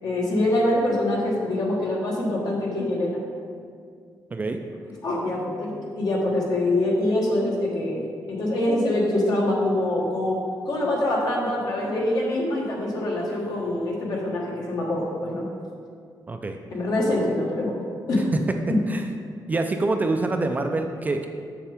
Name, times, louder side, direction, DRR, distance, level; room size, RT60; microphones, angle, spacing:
voice 1, 0.0-3.2 5.0-10.4 10.6-15.4 16.7-17.7 18.1-18.3 18.7-18.8, left 1 dB, 60° left, -3 dB, 1.5 m, -24 dB
voice 2, 16.3-16.6 18.9-19.1 19.5-21.3, right 2 dB, 20° right, 5 dB, 0.3 m, -25 dB
7.1 x 6.9 x 3.5 m, 2.2 s
wide cardioid pair, 170°, 8 cm